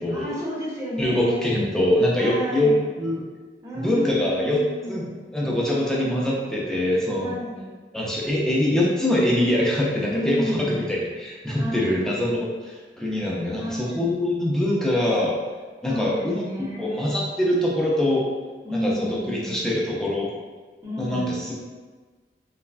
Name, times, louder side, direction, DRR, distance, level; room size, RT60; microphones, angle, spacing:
voice 1, 0.1-1.5 2.2-2.8 3.6-5.2 5.8-6.2 7.1-7.7 10.0-10.8 11.6-12.0 13.6-14.1 15.9-17.1 18.6-19.7 20.8-21.3, equal, 20° right, -6 dB, 0.7 m, -31 dB
voice 2, 1.0-3.2 3.8-7.3 7.9-15.3 15.8-16.4 16.8-18.3 18.7-20.3 21.0-21.5, left 1 dB, 5° left, -5 dB, 0.3 m, -23 dB
3.2 x 2.1 x 2.3 m, 1.4 s
head